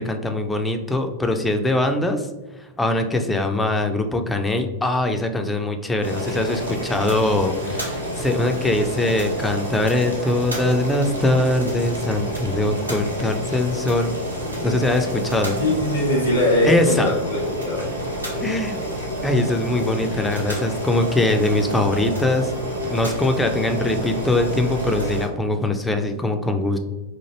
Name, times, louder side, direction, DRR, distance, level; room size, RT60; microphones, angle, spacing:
voice 1, 0.0-2.3 2.8-14.1 14.6-15.6 16.6-17.1 18.4-18.8 19.2-22.5 22.8-26.8, left 2 dB, 10° left, 5 dB, 0.3 m, -22 dB
Boiling, 6.0-25.3, equal, 85° right, 0.7 m, -29 dB
voice 2, 15.6-17.9 18.3-18.5, left 1 dB, 65° left, -3 dB, 0.8 m, -21 dB
2.9 x 2.4 x 2.8 m, 1.1 s
figure-of-eight pair, 90°, 0 cm